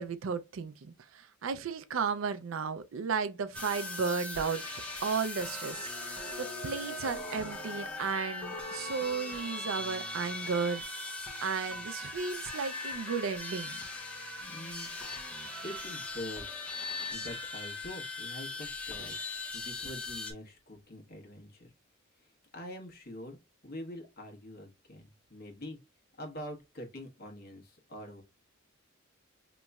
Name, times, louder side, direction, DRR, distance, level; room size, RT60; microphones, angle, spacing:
voice 1, 0.0-4.6 5.0-10.8 11.4-13.8, right 5 dB, 65° right, 0.4 m, -34 dB
sound 1, 3.5-20.3, left 2 dB, 5° left, 0.9 m, -39 dB
voice 2, 14.5-14.9 15.6-16.6 17.1-21.7 22.5-23.4 23.6-25.8 26.2-28.2, left 1 dB, 50° left, 1.2 m, -45 dB
5.2 x 3.0 x 2.3 m
head